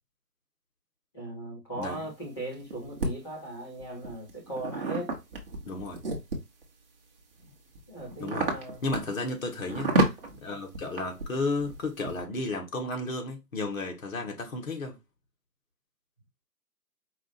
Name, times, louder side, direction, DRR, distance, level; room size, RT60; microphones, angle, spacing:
voice 1, 1.1-5.1 7.9-8.8, right 1 dB, 15° left, 1.0 m, -38 dB
sound 1, 1.9-3.1 3.8-6.6 7.2-12.2, right 2 dB, 35° right, 1.0 m, -31 dB
voice 2, 5.7-6.0 8.2-8.5 8.8-9.9 10.4-15.0, left 2 dB, 50° left, 1.4 m, -33 dB
4.8 x 2.4 x 4.1 m
hypercardioid pair, 160°, 50 cm